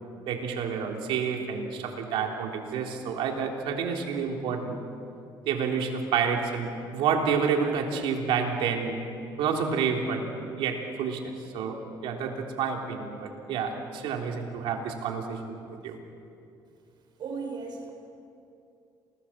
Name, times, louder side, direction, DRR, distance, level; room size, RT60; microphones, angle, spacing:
voice 1, 0.3-4.8 5.5-9.0 9.4-10.3 10.6-16.0, right 6 dB, 80° right, 2 dB, 3.4 m, -29 dB
voice 2, 17.2-17.9, right 4 dB, 55° right, 4 dB, 5.9 m, -35 dB
28.5 x 20.5 x 7.5 m, 2.6 s
cardioid pair, 105°, 9 cm